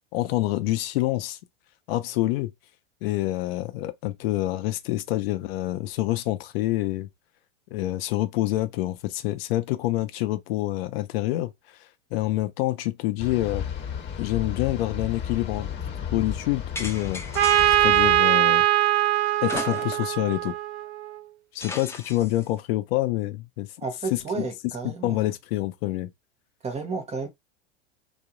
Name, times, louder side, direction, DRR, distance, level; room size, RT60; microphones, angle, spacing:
voice 1, 0.1-1.4 1.9-2.5 3.0-7.1 7.7-11.5 12.1-13.6 14.2-15.7 16.1-17.2 17.8-18.7 19.4-20.5 21.5-23.7 24.1-24.5 24.8-26.1, left 16 dB, 60° left, 0.6 m, -27 dB
sound 1, 13.2-18.2, left 8 dB, 35° left, 1.1 m, -33 dB
sound 2, 16.8-18.0 19.4-20.2 20.5-20.6 21.6-22.5, left 3 dB, 10° left, 0.4 m, -36 dB
Trumpet, 17.4-21.1, right 13 dB, 75° right, 0.5 m, -21 dB
voice 2, 23.8-25.3 26.6-27.3, right 4 dB, 20° right, 0.8 m, -32 dB
2.3 x 2.0 x 2.8 m
hypercardioid pair, 100°, 33 cm